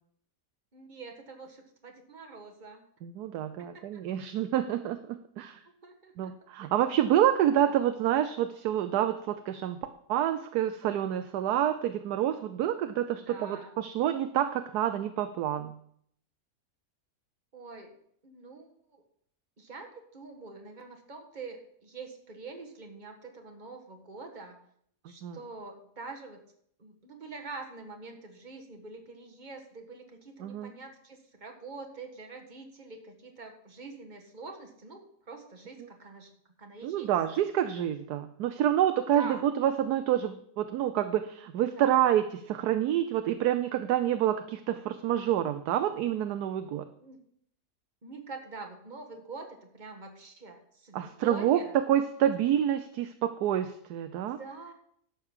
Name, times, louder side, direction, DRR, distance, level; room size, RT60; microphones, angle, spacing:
voice 1, 0.7-2.8 3.6-4.0 5.8-6.3 6.6-6.7 7.6-7.9 13.1-13.7 17.5-17.9 18.2-19.0 19.6-24.6 25.1-26.4 26.8-36.3 36.6-37.1 39.1-39.4 41.7-42.0 47.0-47.2 48.0-49.5 49.7-51.8 54.3-54.7, right 4 dB, 30° right, 2 dB, 1.7 m, -45 dB
voice 2, 3.0-5.6 6.2-9.8 10.1-15.8 25.2-25.4 30.4-30.7 36.8-46.9 50.9-51.6 51.9-54.4, right 11 dB, 75° right, 9 dB, 1.2 m, -28 dB
11.5 x 6.0 x 7.3 m, 0.67 s
omnidirectional pair, 1.7 m